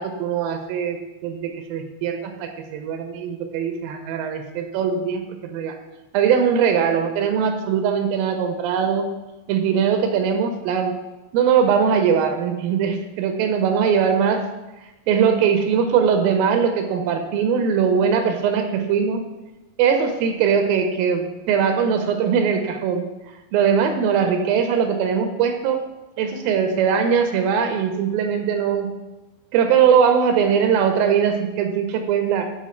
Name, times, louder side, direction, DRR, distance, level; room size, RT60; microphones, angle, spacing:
voice 1, 0.0-5.8 6.1-9.1 9.5-10.9 11.3-14.5 15.1-19.3 19.8-23.1 23.5-25.9 26.2-28.9 29.5-32.5, right 7 dB, 85° right, 6 dB, 2.4 m, -21 dB
8.3 x 4.3 x 4.3 m, 1.0 s
omnidirectional pair, 4.1 m